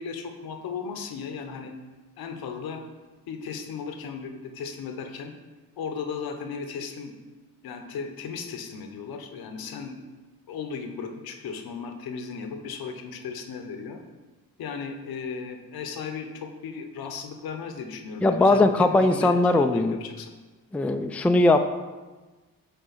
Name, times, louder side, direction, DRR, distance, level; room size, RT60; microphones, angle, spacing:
voice 1, 0.0-1.7 2.2-2.8 3.3-5.3 5.8-7.1 7.6-10.0 10.5-14.0 14.6-20.3, left 5 dB, 70° left, 5 dB, 0.9 m, -36 dB
voice 2, 18.2-20.0 20.7-21.7, left 2 dB, 5° left, 6 dB, 0.4 m, -20 dB
6.9 x 3.8 x 4.0 m, 1.2 s
supercardioid pair, 45°, 38 cm